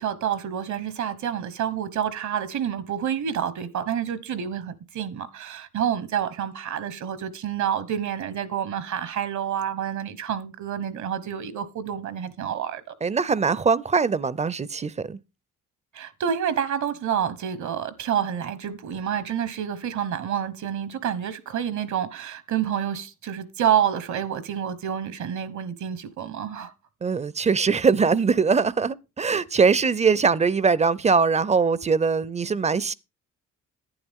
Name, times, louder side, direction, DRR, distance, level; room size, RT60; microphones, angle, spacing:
voice 1, 0.0-12.9 15.9-26.7, right 9 dB, 70° right, 1.2 m, -28 dB
voice 2, 13.0-15.2 27.0-32.9, right 5 dB, 25° right, 0.5 m, -22 dB
11.0 x 9.4 x 3.6 m
cardioid pair, 90°, 30 cm